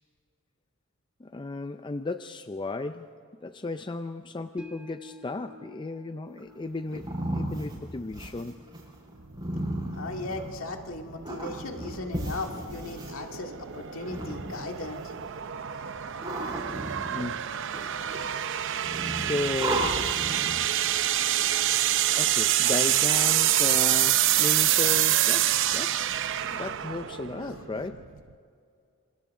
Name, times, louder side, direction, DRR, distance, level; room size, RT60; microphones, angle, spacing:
voice 1, 1.2-3.2 3.4-8.6 16.5-16.6 17.1-17.4 19.2-20.0 22.2-26.1 26.5-28.0, left 2 dB, 20° left, 9 dB, 0.5 m, -35 dB
sound 1, 4.6-15.0 15.3-15.4, left 1 dB, 5° right, 1.6 m, -54 dB
sound 2, 6.4-10.7 11.2-13.1 13.9-15.0 15.8-17.4 17.7-18.4 18.8-20.7, right 1 dB, 20° right, 6.7 m, -34 dB
sound 3, 9.2-28.3, right 12 dB, 60° right, 0.7 m, -27 dB
voice 2, 9.9-15.1 27.4-27.5, left 2 dB, 65° left, 3 dB, 2.2 m, -37 dB
26.5 x 26.0 x 3.8 m, 2.4 s
head